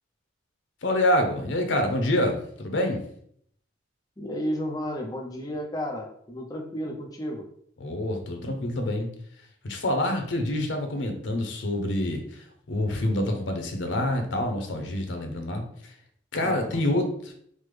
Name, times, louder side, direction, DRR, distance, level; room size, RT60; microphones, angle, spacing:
voice 1, 0.8-3.0 7.8-9.1 9.6-15.9 16.3-17.3, left 1 dB, 85° left, 5 dB, 0.6 m, -27 dB
voice 2, 4.2-7.4 16.4-17.0, equal, 20° left, 1 dB, 0.5 m, -33 dB
3.2 x 2.1 x 3.3 m, 0.65 s
head